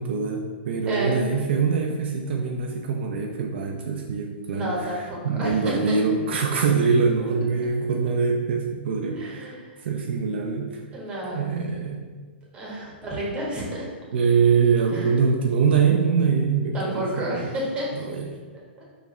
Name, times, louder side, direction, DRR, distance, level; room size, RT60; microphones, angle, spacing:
voice 1, 0.0-9.6 9.8-10.8 11.3-12.2 14.1-17.5 17.9-18.3, right 5 dB, 65° right, 1 dB, 0.5 m, -24 dB
voice 2, 0.9-1.3 4.5-6.0 9.1-9.7 10.9-11.5 12.5-13.9 14.9-15.1 16.7-17.9, right 1 dB, 15° right, -4 dB, 1.4 m, -30 dB
3.6 x 3.2 x 4.2 m, 1.5 s
hypercardioid pair, 140°, 6 cm